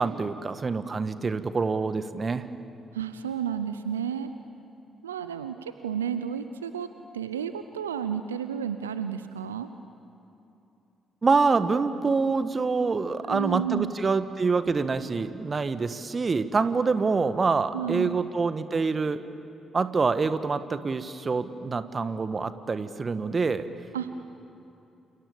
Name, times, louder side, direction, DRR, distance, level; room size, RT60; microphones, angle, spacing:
voice 1, 0.0-2.5 11.2-19.2 19.7-23.7, right 4 dB, 40° right, 12 dB, 1.5 m, -26 dB
voice 2, 2.9-4.3 5.0-6.9 7.1-9.7 13.2-13.9 17.7-18.2 23.9-24.1, right 8 dB, 85° right, 10 dB, 0.6 m, -31 dB
29.5 x 27.5 x 7.2 m, 2.8 s
figure-of-eight pair, 40°, 0 cm